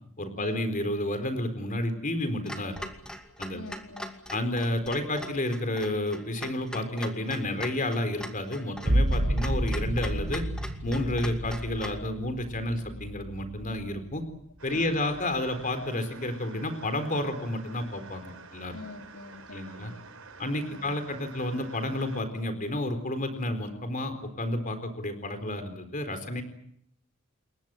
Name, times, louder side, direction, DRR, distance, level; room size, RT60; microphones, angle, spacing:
voice 1, 0.2-2.8 3.4-3.6 4.3-10.4 10.8-14.2 14.6-18.7 19.5-19.9 20.4-26.4, left 1 dB, 35° left, 9 dB, 4.2 m, -31 dB
Clock, 2.5-12.0, equal, 5° left, 2.5 m, -42 dB
voice 2, 3.5-4.1 9.2-9.4 14.7-15.0 18.7-20.0 20.7-20.9, left 3 dB, 80° left, 4 dB, 3.6 m, -45 dB
sound 1, 8.8-14.3 14.8-15.4, right 1 dB, 50° right, 1.7 m, -30 dB
sound 2, 14.6-22.2, right 4 dB, 70° right, 6.6 m, -49 dB
29.0 x 22.0 x 7.8 m, 0.69 s
head